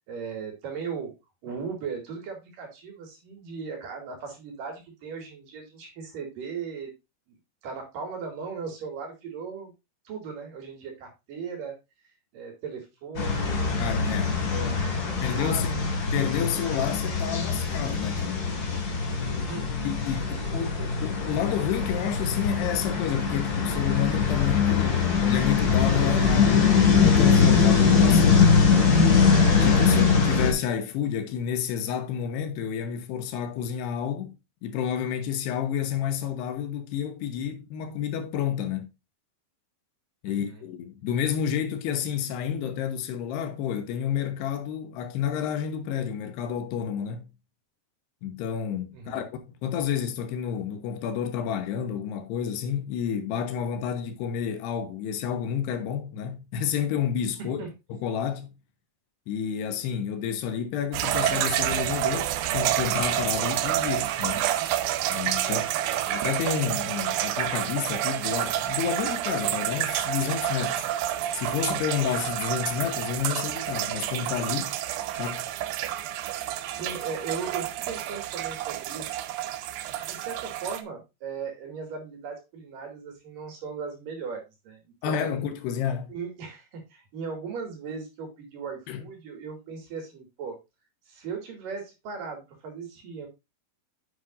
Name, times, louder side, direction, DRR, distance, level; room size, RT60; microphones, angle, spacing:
voice 1, 0.1-1.1 1.4-6.9 7.6-9.7 10.1-11.8 12.3-13.9 14.4-15.9 19.3-19.8 20.3-20.9 40.2-40.6 48.9-49.2 57.6-57.7 65.5-65.7 76.5-79.1 79.9-85.4 86.1-90.6 91.1-93.3, right 5 dB, 55° right, 3.7 m, -38 dB
sound 1, 13.1-30.5, left 5 dB, 50° left, 1.1 m, -22 dB
voice 2, 13.8-14.3 15.2-15.7 16.1-18.5 19.8-26.7 27.0-28.7 29.6-34.3 34.6-38.9 40.2-47.3 48.2-57.6 57.9-58.5 59.3-64.5 65.1-65.6 66.1-70.9 71.3-74.8 75.1-75.4 85.0-86.1 88.9-89.0, left 8 dB, 80° left, 3.1 m, -30 dB
sound 2, 60.9-80.8, right 13 dB, 90° right, 2.0 m, -29 dB
8.9 x 7.6 x 2.5 m
omnidirectional pair, 4.8 m